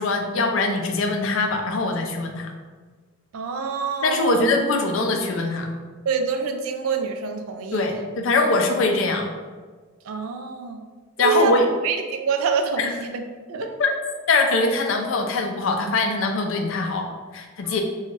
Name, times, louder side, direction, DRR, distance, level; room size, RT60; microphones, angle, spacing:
voice 1, 0.0-2.5 4.0-5.7 7.7-9.3 11.2-11.7 12.8-12.9 13.8-13.9 14.3-17.8, left 3 dB, 65° left, 4 dB, 0.4 m, -22 dB
voice 2, 3.3-4.5 6.1-8.0 10.0-10.8 11.2-13.2 13.5-13.7 17.6-17.8, right 5 dB, 80° right, 5 dB, 0.3 m, -26 dB
3.1 x 2.3 x 2.5 m, 1.4 s
head